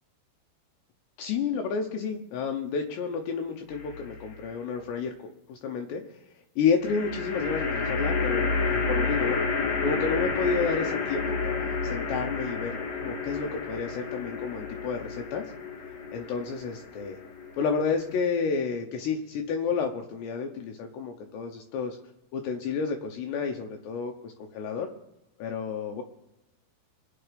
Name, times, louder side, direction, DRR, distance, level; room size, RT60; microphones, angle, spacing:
voice 1, 1.2-5.1 5.5-6.0 6.6-9.4 9.8-15.5 16.1-17.2 17.6-22.0 22.3-24.9 25.4-26.0, left 5 dB, 75° left, 3 dB, 2.8 m, -30 dB
sound 1, 3.7-4.3 6.8-18.2, left 4 dB, 50° left, 2.0 m, -30 dB
24.0 x 8.8 x 5.1 m, 0.97 s
omnidirectional pair, 5.5 m